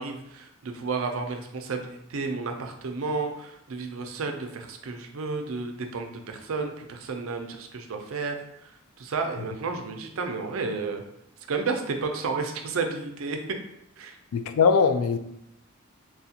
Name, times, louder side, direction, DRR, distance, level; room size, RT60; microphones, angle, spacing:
voice 1, 0.0-8.4 8.6-8.7 9.0-11.0 11.5-13.4 14.0-14.2, right 4 dB, 70° right, 4 dB, 0.5 m, -32 dB
voice 2, 14.3-15.2, left 5 dB, 85° left, 9 dB, 0.3 m, -21 dB
4.2 x 2.4 x 2.8 m, 0.78 s
head